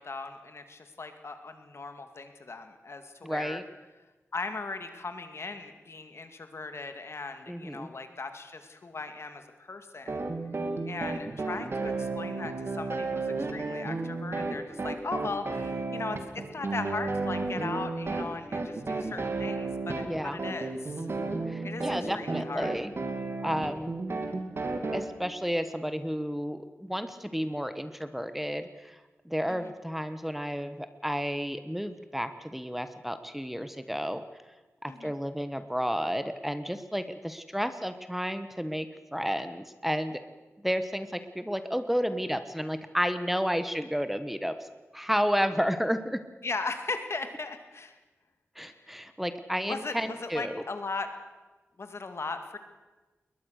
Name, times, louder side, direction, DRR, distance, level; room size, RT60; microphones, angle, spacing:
voice 1, 0.0-3.6 4.3-10.2 10.9-21.1 21.6-22.7 29.5-29.7 34.9-35.1 46.4-48.0 48.7-48.9 49.7-51.1 51.8-52.6, left 3 dB, 60° left, 8 dB, 2.1 m, -38 dB
voice 2, 3.2-3.6 7.5-7.9 20.0-20.4 21.5-22.9 23.4-23.9 24.9-29.0 29.2-34.2 34.8-40.2 40.6-44.7 44.9-46.2 48.6-50.6, equal, 5° right, 10 dB, 1.2 m, -31 dB
sound 1, 10.1-25.0, right 3 dB, 55° right, 2.6 m, -33 dB
21.0 x 21.0 x 6.5 m, 1.2 s
wide cardioid pair, 75°, 5 cm